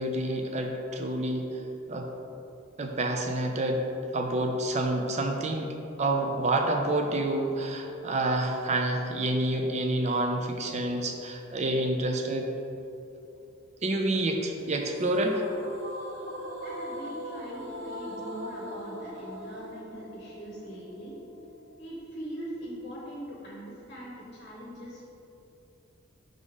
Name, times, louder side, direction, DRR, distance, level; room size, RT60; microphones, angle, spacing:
voice 1, 0.0-1.6 1.9-2.1 2.8-3.8 4.1-12.5 13.8-15.4, right 1 dB, 35° right, 3 dB, 0.4 m, -28 dB
sound 1, 15.0-22.0, equal, 70° right, 0.8 m, -40 dB
voice 2, 16.6-21.2 21.8-25.1, right 1 dB, 35° left, -6 dB, 1.0 m, -42 dB
5.3 x 3.7 x 4.8 m, 2.8 s
head